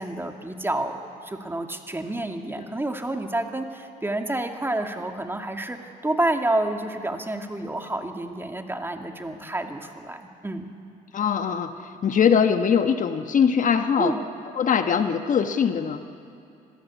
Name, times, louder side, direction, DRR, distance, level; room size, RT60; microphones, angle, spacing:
voice 1, 0.0-10.7 14.0-14.2, right 1 dB, 15° right, 4 dB, 2.2 m, -29 dB
voice 2, 11.1-11.7 12.0-14.1 14.6-16.0, left 7 dB, 55° left, 8 dB, 1.2 m, -21 dB
25.5 x 16.5 x 8.4 m, 2.5 s
supercardioid pair, 70°, 16 cm